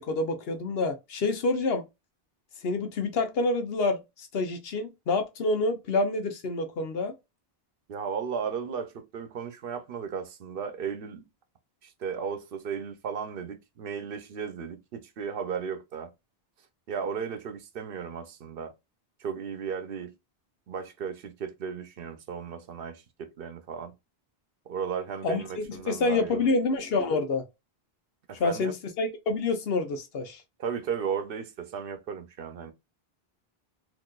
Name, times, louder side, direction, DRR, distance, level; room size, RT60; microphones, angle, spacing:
voice 1, 0.0-1.8 2.6-7.1 25.2-27.4 28.4-30.4, left 3 dB, 75° left, 1.0 m, -27 dB
voice 2, 7.9-11.3 11.8-16.1 16.9-18.7 19.2-20.1 20.7-23.9 24.7-26.5 28.3-28.7 30.6-32.7, right 6 dB, 65° right, 0.8 m, -35 dB
3.9 x 2.6 x 2.3 m
omnidirectional pair, 1.0 m